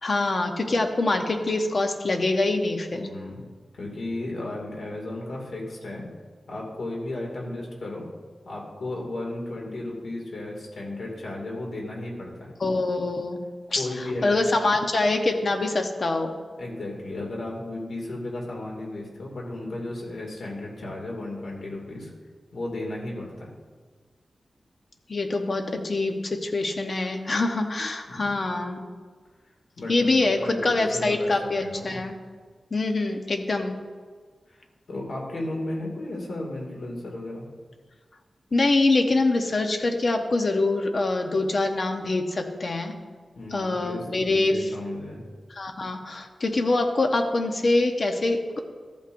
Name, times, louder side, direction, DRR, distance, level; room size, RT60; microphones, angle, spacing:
voice 1, 0.0-3.0 12.6-13.4 13.7-16.3 25.1-28.8 29.9-32.1 32.7-33.8 38.5-42.9 43.5-44.5 45.5-48.6, left 2 dB, 45° left, 4 dB, 1.0 m, -24 dB
voice 2, 2.9-3.4 3.7-6.1 6.5-8.1 8.4-12.5 13.7-14.4 16.6-22.1 22.5-23.5 28.1-28.4 29.8-32.0 34.5-37.5 43.4-45.2, left 2 dB, 90° left, -2 dB, 2.3 m, -34 dB
14.0 x 8.4 x 2.6 m, 1.5 s
wide cardioid pair, 130°, 0 cm